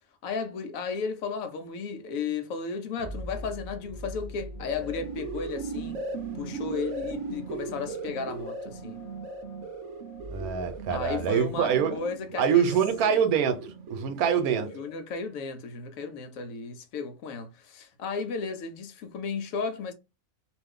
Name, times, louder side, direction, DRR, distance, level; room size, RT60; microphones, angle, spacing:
voice 1, 0.2-6.0 6.3-9.0 10.9-12.7 14.7-19.9, left 5 dB, 70° left, 1.0 m, -34 dB
sound 1, 3.0-11.6, equal, 40° left, 1.1 m, -44 dB
sound 2, 4.4-15.0, right 4 dB, 65° right, 0.8 m, -38 dB
voice 2, 10.3-12.0 12.4-14.7, right 7 dB, 90° right, 1.1 m, -25 dB
2.5 x 2.5 x 3.5 m
omnidirectional pair, 1.5 m